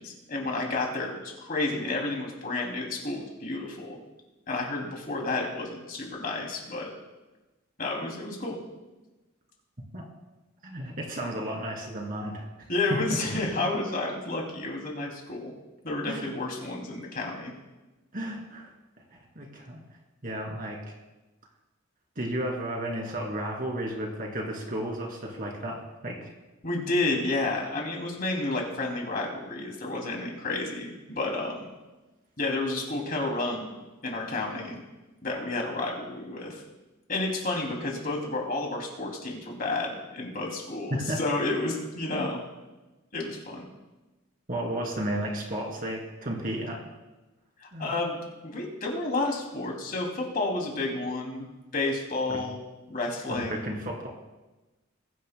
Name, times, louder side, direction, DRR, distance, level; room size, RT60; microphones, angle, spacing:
voice 1, 0.0-4.0 4.5-6.9 7.8-8.6 12.7-15.5 15.8-17.5 26.6-31.7 32.4-33.7 34.0-34.8 35.2-36.6 37.1-42.4 43.1-43.7 47.6-51.5 51.7-52.6 52.9-53.7, left 2 dB, 45° left, 0 dB, 2.7 m, -31 dB
voice 2, 10.6-12.5 16.1-16.3 18.1-18.7 19.1-19.8 20.2-20.8 22.2-26.3 40.9-41.2 44.5-46.8 47.7-47.9 52.3-52.4 53.3-54.1, right 1 dB, 45° right, 0 dB, 2.6 m, -33 dB
21.5 x 10.0 x 2.2 m, 1.1 s
head